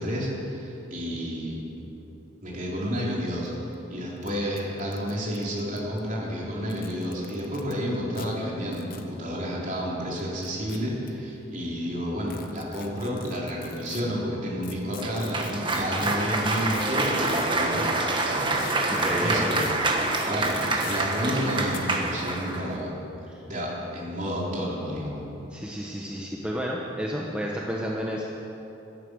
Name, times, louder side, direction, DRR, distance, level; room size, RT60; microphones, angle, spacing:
voice 1, 0.0-1.6 2.4-3.5 3.9-25.2, equal, 40° right, -4 dB, 3.7 m, -31 dB
sound 1, 3.5-3.6 3.7-3.8 4.2-4.3 4.6-6.0 6.6-7.7 8.1-8.3 8.7-9.1 10.2-11.1 12.3-14.0 14.6-17.6 18.6-19.1 19.5-19.7 20.1-21.0 21.7-21.8, left 5 dB, 45° left, 1.1 m, -42 dB
Cheering / Applause, 15.0-22.7, right 2 dB, 25° right, 1.3 m, -27 dB
voice 2, 15.8-16.2 18.9-19.5 23.3-23.4 25.5-28.2, equal, 5° right, -3 dB, 1.0 m, -31 dB
16.5 x 12.5 x 6.4 m, 3.0 s
head